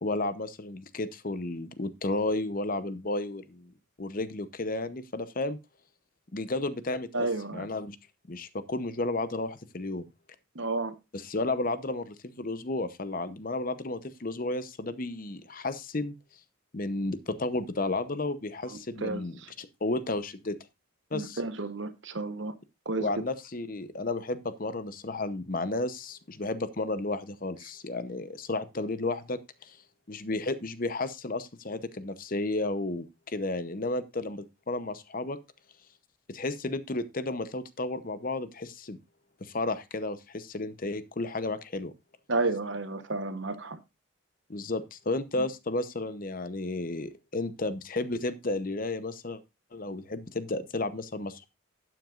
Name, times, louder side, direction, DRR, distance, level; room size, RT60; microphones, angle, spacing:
voice 1, 0.0-3.7 4.0-5.6 6.3-8.0 8.3-10.1 11.1-16.2 16.7-20.6 21.1-21.4 23.0-29.8 30.1-35.4 36.3-39.0 39.4-41.9 44.5-49.4 49.7-51.5, left 2 dB, 40° left, 0.8 m, -32 dB
voice 2, 7.1-7.7 10.5-10.9 19.0-19.5 21.1-22.5 22.9-23.1 42.3-43.8, right 3 dB, 60° right, 1.0 m, -31 dB
12.0 x 9.1 x 2.5 m
head